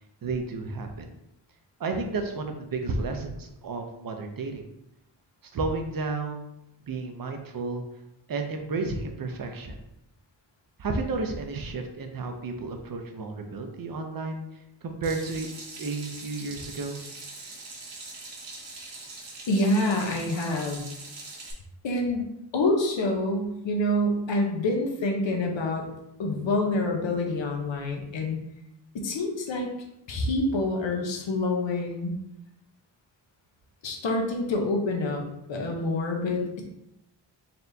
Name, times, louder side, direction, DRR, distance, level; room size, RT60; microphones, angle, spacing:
voice 1, 0.2-1.1 1.8-4.6 5.4-6.5 6.9-7.8 8.3-9.8 10.8-14.4 14.8-15.5 15.8-17.0, right 3 dB, 50° right, 5 dB, 0.6 m, -32 dB
Water tap faucet / Sink (filling or washing), 15.0-21.5, right 3 dB, 75° right, 1.0 m, -42 dB
voice 2, 19.5-20.8 21.8-22.3 22.5-25.9 26.2-28.4 28.9-29.7 30.1-32.2 33.8-35.2 35.5-36.6, left 1 dB, 90° left, 2 dB, 0.9 m, -27 dB
4.2 x 3.4 x 2.7 m, 0.83 s
wide cardioid pair, 160°, 43 cm